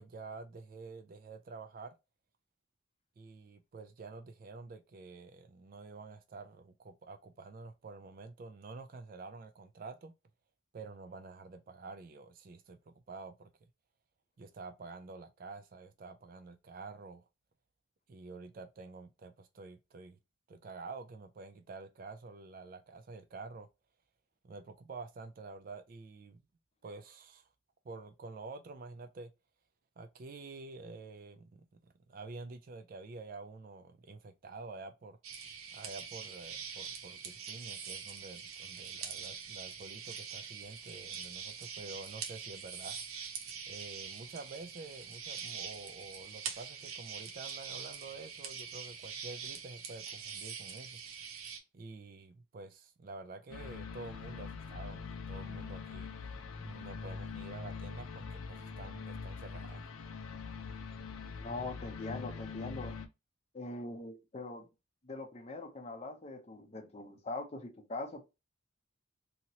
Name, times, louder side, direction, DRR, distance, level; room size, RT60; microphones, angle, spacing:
voice 1, 0.0-1.9 3.2-10.1 10.7-13.5 14.4-17.2 18.1-20.2 20.5-23.7 24.4-26.4 26.8-27.5 27.8-29.3 30.0-35.2 35.7-42.9 43.7-51.0 51.7-56.1 56.6-59.8, right 3 dB, 40° right, 0.3 m, -48 dB
sound 1, 35.2-51.6, right 6 dB, 80° right, 0.7 m, -44 dB
sound 2, 53.5-63.1, left 5 dB, 80° left, 0.5 m, -43 dB
voice 2, 61.4-63.0 63.5-64.7 65.0-68.3, left 2 dB, 30° left, 0.5 m, -42 dB
2.8 x 2.8 x 2.7 m
head